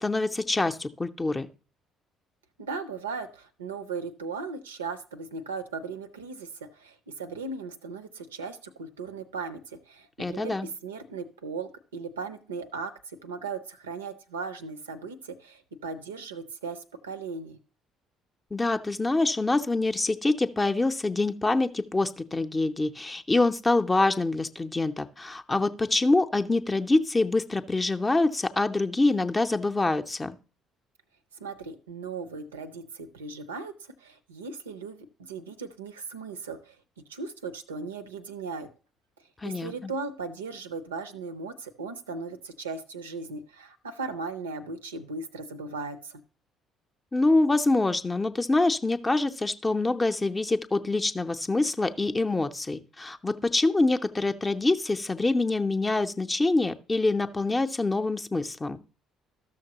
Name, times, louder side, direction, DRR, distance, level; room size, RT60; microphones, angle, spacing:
voice 1, 0.0-1.5 10.2-10.7 18.5-30.3 39.4-39.9 47.1-58.8, left 2 dB, 20° left, 8 dB, 0.5 m, -25 dB
voice 2, 2.6-17.6 31.4-36.8 37.1-38.7 39.4-46.2, right 4 dB, 80° right, 10 dB, 0.4 m, -37 dB
13.0 x 6.4 x 2.9 m, 0.36 s
figure-of-eight pair, 50°, 0 cm